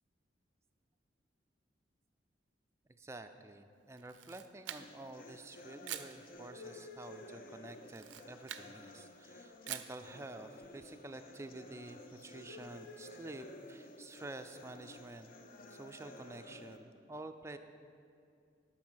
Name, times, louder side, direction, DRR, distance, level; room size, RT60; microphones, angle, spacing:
voice 1, 3.0-15.3 15.7-17.6, right 2 dB, 15° right, 7 dB, 0.3 m, -49 dB
Camera, 4.0-5.1 5.8-6.2 7.8-8.7 9.7-10.0, right 12 dB, 75° right, 0.4 m, -45 dB
sound 1, 4.8-16.8, left 2 dB, 50° left, 0.6 m, -53 dB
8.6 x 6.1 x 6.3 m, 2.5 s
head